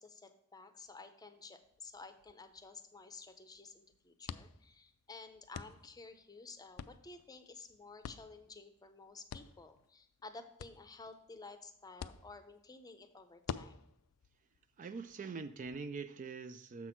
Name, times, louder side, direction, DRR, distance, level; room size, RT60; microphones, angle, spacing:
voice 1, 0.0-13.8, left 3 dB, 15° left, 9 dB, 0.6 m, -53 dB
sound 1, 1.6-15.8, left 7 dB, 75° left, 0.4 m, -51 dB
voice 2, 14.8-16.9, right 4 dB, 35° right, 11 dB, 0.3 m, -43 dB
7.1 x 6.0 x 4.4 m, 0.77 s
head